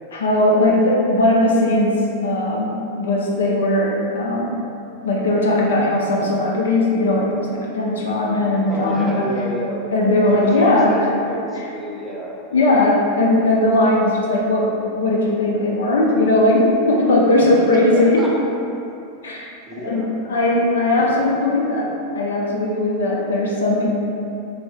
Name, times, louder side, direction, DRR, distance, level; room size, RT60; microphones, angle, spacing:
voice 1, 0.1-4.5 5.0-9.3 9.9-11.0 12.5-18.2 19.2-19.5 19.8-23.9, left 1 dB, 65° left, -3 dB, 0.4 m, -18 dB
voice 2, 8.6-9.8 10.2-12.7 17.4-18.4 19.6-20.2 20.9-21.4, right 1 dB, 10° right, -5 dB, 0.5 m, -30 dB
2.9 x 2.6 x 3.2 m, 2.7 s
figure-of-eight pair, 90°, 0 cm